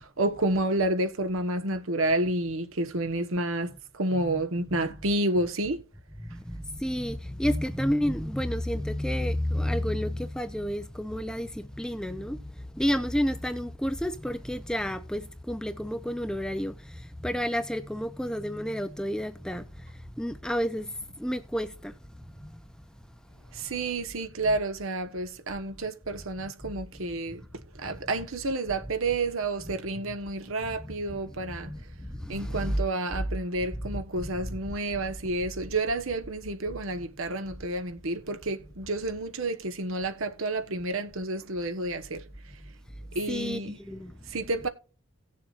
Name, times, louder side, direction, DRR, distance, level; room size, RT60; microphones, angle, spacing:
voice 1, 0.0-5.8 23.5-31.7 32.3-42.2 43.1-43.8 44.3-44.7, right 2 dB, 65° right, 1.2 m, -30 dB
voice 2, 6.3-22.6 23.5-23.7 27.3-27.4 27.9-28.0 30.8-31.0 31.5-32.8 43.3-44.1, equal, 5° left, 0.5 m, -31 dB
18.0 x 7.0 x 2.5 m
head